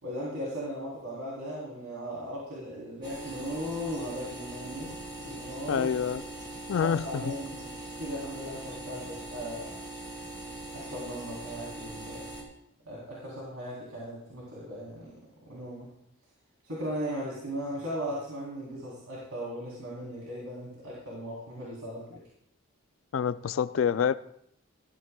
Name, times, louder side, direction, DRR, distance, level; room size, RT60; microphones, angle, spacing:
voice 1, 0.0-5.9 6.8-7.7 7.9-9.8 10.7-12.2 12.8-15.1 15.4-15.9 16.6-22.2, equal, 85° right, -6 dB, 3.4 m, -37 dB
sound 1, 3.0-12.4, right 2 dB, 20° right, 2.7 m, -41 dB
voice 2, 5.7-6.2 6.7-7.3 23.1-24.1, left 7 dB, 65° left, 14 dB, 0.3 m, -27 dB
18.0 x 13.0 x 2.3 m, 0.73 s
head